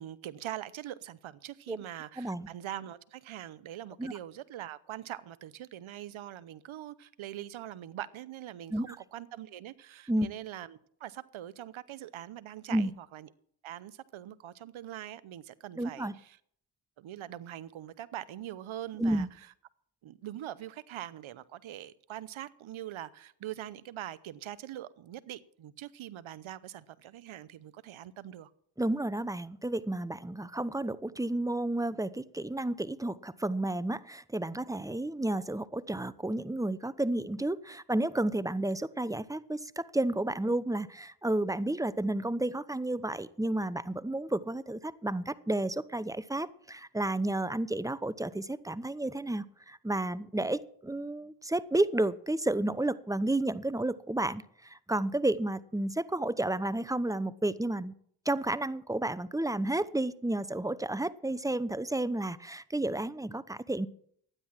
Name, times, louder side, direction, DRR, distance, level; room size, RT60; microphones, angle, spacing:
voice 1, 0.0-13.3 13.6-16.4 17.0-19.5 20.0-28.5, right 12 dB, 80° right, 0.9 m, -43 dB
voice 2, 2.2-2.5 4.0-4.1 8.7-9.0 10.1-10.3 12.7-12.9 15.8-16.1 19.0-19.3 28.8-57.9 58.2-63.9, right 1 dB, 5° right, 0.8 m, -31 dB
12.5 x 9.8 x 7.4 m
supercardioid pair, 45°, 48 cm